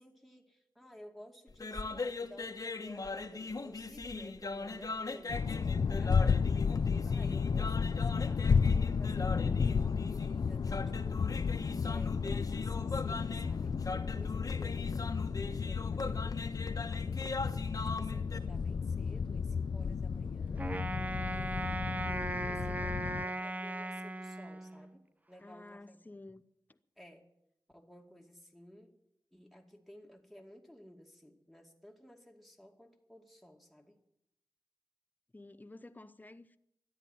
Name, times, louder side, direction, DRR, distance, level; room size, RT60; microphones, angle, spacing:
voice 1, 0.0-8.5 9.0-11.3 11.8-20.7 21.3-25.0 25.3-26.0 27.0-27.3 27.7-29.0 29.3-34.0, equal, ahead, 2.5 m, -55 dB
sound 1, 1.5-18.4, left 3 dB, 50° left, 1.4 m, -40 dB
sound 2, 5.3-23.3, left 5 dB, 65° left, 0.5 m, -32 dB
voice 2, 11.6-12.2 25.4-26.4 35.3-36.6, left 2 dB, 20° left, 0.8 m, -50 dB
Wind instrument woodwind instrument, 20.6-25.0, right 1 dB, 20° right, 0.7 m, -38 dB
13.0 x 10.5 x 9.4 m
wide cardioid pair, 70°, 8 cm